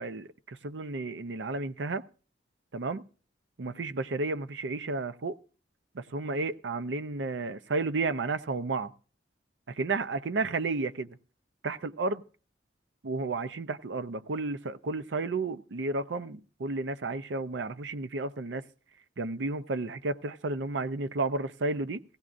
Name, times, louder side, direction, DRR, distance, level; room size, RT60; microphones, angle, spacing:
voice 1, 0.0-2.0 2.7-3.0 3.6-5.4 5.9-8.9 9.7-11.1 11.6-12.2 13.0-18.6 19.2-22.0, right 3 dB, 80° right, 0.6 m, -32 dB
17.0 x 17.0 x 2.5 m
head